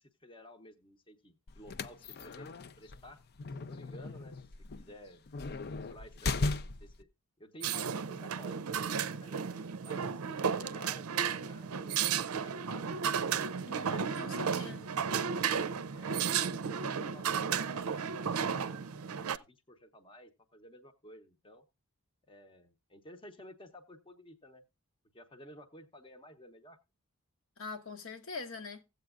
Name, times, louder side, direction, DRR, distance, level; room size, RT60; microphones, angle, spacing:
voice 1, 0.0-3.2 3.6-4.3 4.8-5.2 5.7-7.1 7.4-9.4 9.8-13.0 13.8-15.2 15.9-18.8 19.2-21.6 22.3-24.6 25.1-26.8, equal, 25° left, 0.8 m, -53 dB
sound 1, 1.5-7.0, left 3 dB, 50° left, 0.5 m, -37 dB
sound 2, 7.6-19.4, right 7 dB, 75° right, 0.5 m, -33 dB
voice 2, 13.6-14.9 27.6-28.8, left 3 dB, 65° left, 1.1 m, -43 dB
16.5 x 8.0 x 2.4 m
head